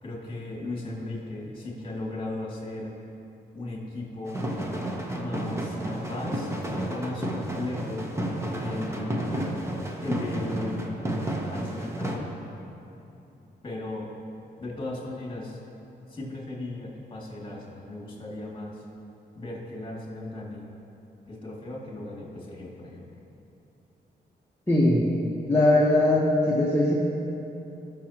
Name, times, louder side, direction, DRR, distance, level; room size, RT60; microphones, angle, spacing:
voice 1, 0.0-2.9 3.5-4.4 5.1-6.5 6.9-8.1 8.6-9.5 10.0-11.0 11.5-12.3 13.6-14.1 14.6-15.6 16.1-18.8 19.3-20.7 21.3-23.1, left 2 dB, 30° left, -3 dB, 2.4 m, -36 dB
sound 1, 4.3-12.2, right 1 dB, 15° right, 1.0 m, -31 dB
voice 2, 24.7-25.1 25.5-27.0, left 1 dB, 15° left, -7 dB, 1.1 m, -20 dB
18.0 x 6.5 x 3.0 m, 2.9 s
cardioid pair, 120°, 17 cm